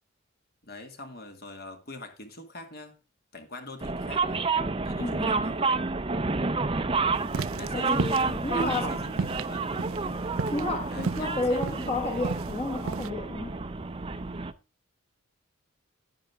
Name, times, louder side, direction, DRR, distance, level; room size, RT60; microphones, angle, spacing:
voice 1, 0.6-3.0 3.3-4.5 4.8-5.8 7.3-9.9 10.9-11.6, left 2 dB, 45° left, 2.1 m, -44 dB
sound 1, 3.8-14.5, right 3 dB, 25° right, 0.6 m, -30 dB
voice 2, 5.0-5.4 7.7-9.0 10.5-13.6, left 2 dB, 30° left, 1.6 m, -31 dB
sound 2, 7.2-13.1, right 4 dB, 75° right, 0.5 m, -34 dB
10.5 x 9.8 x 3.5 m
head